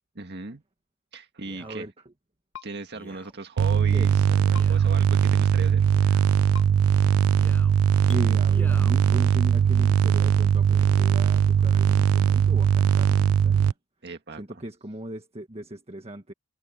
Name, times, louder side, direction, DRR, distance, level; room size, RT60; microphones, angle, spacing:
voice 1, 0.2-0.6 1.1-1.9 2.6-5.8 14.0-14.6, right 3 dB, 50° right, 1.9 m, -37 dB
Male speech man speaking, 1.4-1.8 2.9-3.4 4.4-5.0 5.9-6.3 7.3-7.8 8.5-9.0 9.7-9.8, left 1 dB, 10° left, 7.1 m, -46 dB
voice 2, 1.6-1.9 3.9-4.3 8.0-13.7 14.4-16.3, right 1 dB, 30° right, 1.6 m, -38 dB
sound 1, 2.5-2.7 4.5-4.7 6.5-6.7 8.1-8.2, left 9 dB, 65° left, 1.6 m, -41 dB
sound 2, 3.6-13.7, right 8 dB, 70° right, 0.3 m, -20 dB
head